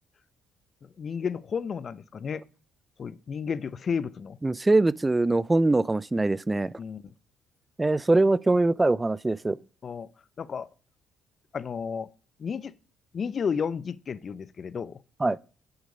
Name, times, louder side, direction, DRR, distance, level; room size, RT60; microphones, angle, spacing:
voice 1, 0.8-2.4 3.0-4.4 6.8-7.1 9.8-10.1 10.4-10.7 11.5-12.1 12.4-12.7 13.1-15.0, left 6 dB, 50° left, 0.6 m, -32 dB
voice 2, 4.4-6.7 7.8-9.6 15.2-15.4, right 2 dB, 20° right, 0.4 m, -23 dB
8.1 x 7.9 x 5.4 m
supercardioid pair, 65°, 0 cm